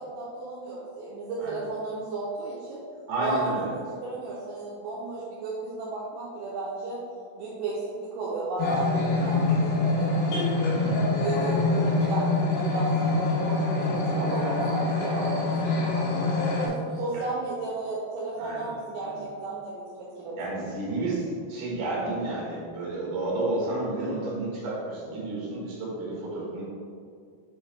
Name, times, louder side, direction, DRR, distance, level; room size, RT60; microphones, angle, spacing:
voice 1, 0.0-2.8 3.2-7.0 7.4-16.1 16.5-19.7 20.0-20.5, right 3 dB, 80° right, -7 dB, 2.9 m, -34 dB
voice 2, 3.1-3.7 9.1-9.3 10.7-11.0 17.1-17.2 18.4-18.7 19.0-19.2 20.4-26.6, right 2 dB, 65° right, -5 dB, 3.2 m, -31 dB
sound 1, 8.6-16.7, left 3 dB, 65° left, 3.3 m, -25 dB
7.5 x 4.5 x 3.3 m, 2.3 s
omnidirectional pair, 5.6 m